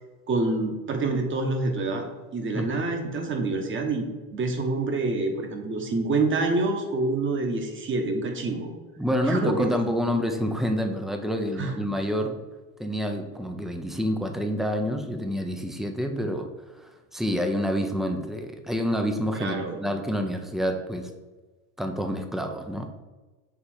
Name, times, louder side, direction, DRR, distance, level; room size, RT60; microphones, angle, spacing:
voice 1, 0.3-2.1 2.3-8.7 9.2-9.8 11.6-11.7 19.3-19.8, right 3 dB, 30° right, 4 dB, 1.2 m, -27 dB
voice 2, 9.0-12.4 12.8-16.5 16.8-21.1 21.8-22.9, equal, ahead, 5 dB, 0.6 m, -28 dB
6.9 x 3.3 x 4.4 m, 1.3 s
supercardioid pair, 100°, 41 cm